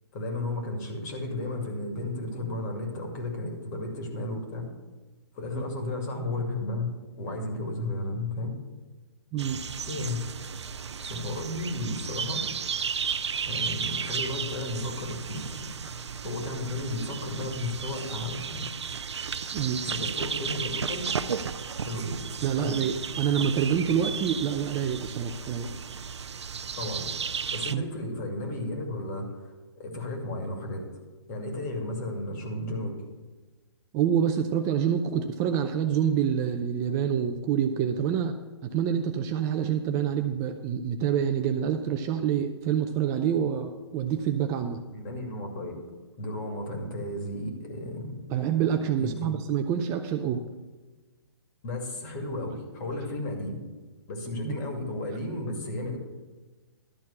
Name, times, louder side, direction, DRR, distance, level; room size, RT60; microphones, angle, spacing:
voice 1, 0.1-4.7 5.3-8.6 9.8-10.2 11.0-12.5 13.4-18.7 19.8-21.1 21.8-22.2 22.6-22.8 26.7-27.1 27.5-30.8 31.3-33.0 44.9-45.7 46.2-48.2 49.0-49.4 51.6-53.6 54.1-56.0, left 1 dB, 40° left, 2 dB, 2.3 m, -34 dB
sound 1, 9.4-27.7, right 6 dB, 85° right, 0.5 m, -34 dB
voice 2, 22.4-25.7 27.7-27.8 33.9-38.4 38.6-44.8 48.3-50.4 54.4-54.5, right 8 dB, 20° right, 6 dB, 0.5 m, -27 dB
12.5 x 4.4 x 8.4 m, 1.3 s
hypercardioid pair, 140°, 14 cm